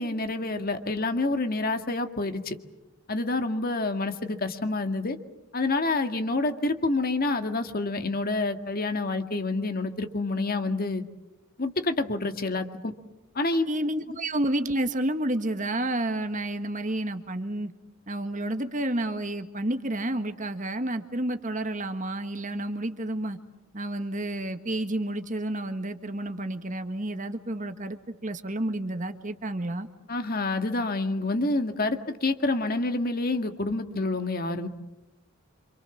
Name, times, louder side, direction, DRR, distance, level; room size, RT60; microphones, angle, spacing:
voice 1, 0.0-2.6 3.1-5.2 5.5-11.0 11.6-12.9 13.3-13.7 30.1-34.7, left 2 dB, 40° left, 7 dB, 2.0 m, -28 dB
voice 2, 13.7-17.7 18.1-23.4 23.7-29.9, right 1 dB, 35° right, 8 dB, 1.6 m, -30 dB
28.0 x 27.5 x 7.2 m, 0.95 s
head